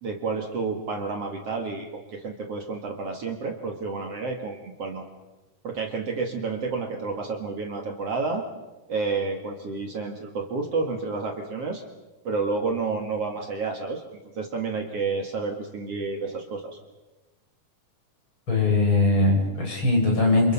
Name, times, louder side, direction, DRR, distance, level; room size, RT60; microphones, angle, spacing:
voice 1, 0.0-5.1 5.6-8.4 8.9-11.8 12.2-16.8, right 4 dB, 50° right, 2 dB, 2.8 m, -30 dB
voice 2, 18.5-20.5, left 2 dB, 40° left, -1 dB, 7.5 m, -21 dB
29.5 x 27.0 x 5.6 m, 1.1 s
omnidirectional pair, 3.6 m